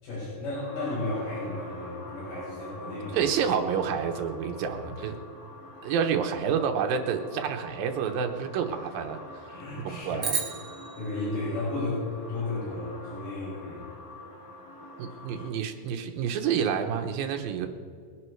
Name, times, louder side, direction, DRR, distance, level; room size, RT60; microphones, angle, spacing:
voice 1, 0.0-3.2 4.7-5.1 9.5-10.3 11.0-13.9 15.3-15.5, left 2 dB, 90° left, -9 dB, 6.9 m, -34 dB
sound 1, 0.5-15.5, left 2 dB, 40° left, 3.2 m, -45 dB
voice 2, 3.1-5.2 5.8-9.2 9.8-10.4 15.0-17.7, right 7 dB, 75° right, 5 dB, 2.7 m, -29 dB
sound 2, 10.2-12.6, right 5 dB, 40° right, 2.0 m, -35 dB
22.0 x 9.7 x 4.7 m, 2.2 s
omnidirectional pair, 4.3 m